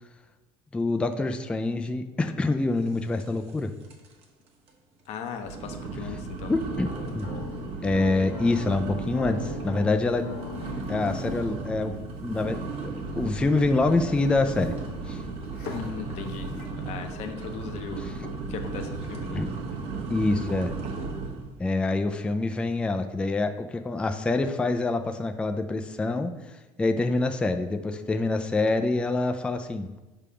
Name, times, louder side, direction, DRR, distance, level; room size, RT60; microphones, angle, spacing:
voice 1, 0.7-3.7 6.5-6.9 7.1-7.3 7.8-10.3 10.9-12.0 12.2-14.7 15.1-15.2 19.3-19.5 20.1-20.7 21.6-26.3 26.8-29.9, left 2 dB, 10° left, 6 dB, 0.3 m, -26 dB
sound 1, 3.2-3.6 3.8-4.2 4.7-4.8 5.3-21.5, right 4 dB, 50° right, 1.0 m, -35 dB
voice 2, 5.1-6.5 15.7-19.4, left 6 dB, 55° left, 6 dB, 0.8 m, -38 dB
sound 2, 6.7-16.7, left 6 dB, 90° left, 1.2 m, -41 dB
4.9 x 3.5 x 5.6 m, 1.1 s
cardioid pair, 135°, 13 cm